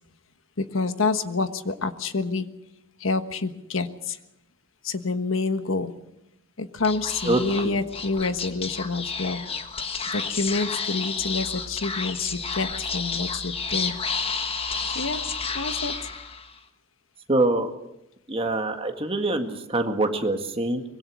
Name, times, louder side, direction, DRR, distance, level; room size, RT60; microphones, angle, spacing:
voice 1, 0.6-2.5 3.0-4.2 4.8-5.9 6.6-9.4 10.1-14.0 14.9-15.2 15.5-16.0, left 3 dB, 75° left, 10 dB, 1.4 m, -28 dB
Speech / Whispering, 6.8-16.6, left 5 dB, 30° left, 1.5 m, -31 dB
voice 2, 7.2-7.8 17.3-17.7 18.3-20.8, right 2 dB, 30° right, 5 dB, 1.9 m, -24 dB
24.0 x 21.5 x 6.3 m, 0.87 s
head